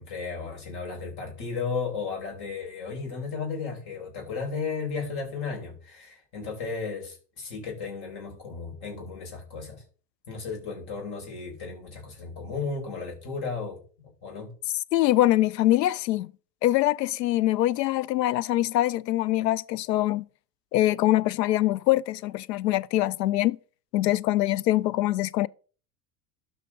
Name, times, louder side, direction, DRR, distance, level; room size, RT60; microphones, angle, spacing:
voice 1, 0.0-9.8 10.3-14.5, left 5 dB, 50° left, 5.1 m, -34 dB
voice 2, 14.9-16.3 16.6-20.3 20.7-23.6 23.9-25.5, left 15 dB, 85° left, 0.6 m, -23 dB
12.5 x 5.2 x 3.8 m
hypercardioid pair, 85°, 48 cm